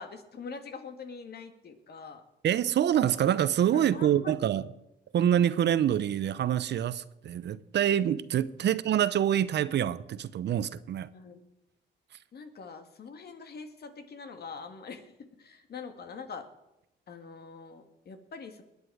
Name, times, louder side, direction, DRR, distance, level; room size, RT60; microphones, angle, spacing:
voice 1, 0.0-2.2 3.7-4.3 8.6-8.8 11.1-11.4 12.3-15.1 15.4-16.5 17.1-18.6, left 5 dB, 55° left, 2.0 m, -44 dB
voice 2, 2.4-4.7 5.1-11.1, right 10 dB, 60° right, 0.7 m, -26 dB
20.5 x 9.8 x 4.8 m
cardioid pair, 90°, 20 cm